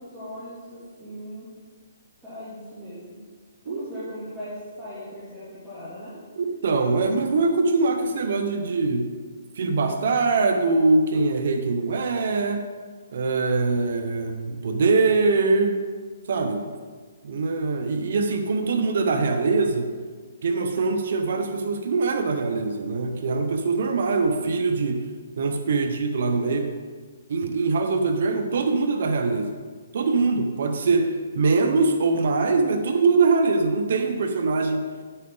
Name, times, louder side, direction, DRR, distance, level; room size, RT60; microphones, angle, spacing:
voice 1, 0.0-1.5 2.2-3.2 3.6-6.1, equal, 5° right, -15 dB, 2.6 m, -39 dB
voice 2, 6.4-9.1 9.5-12.7 13.1-15.8 16.3-16.6 17.2-19.9 20.4-25.1 25.4-26.7 27.3-29.6 29.9-34.9, right 3 dB, 55° right, 6 dB, 0.8 m, -23 dB
9.8 x 8.6 x 3.8 m, 1.5 s
hypercardioid pair, 165°, 0 cm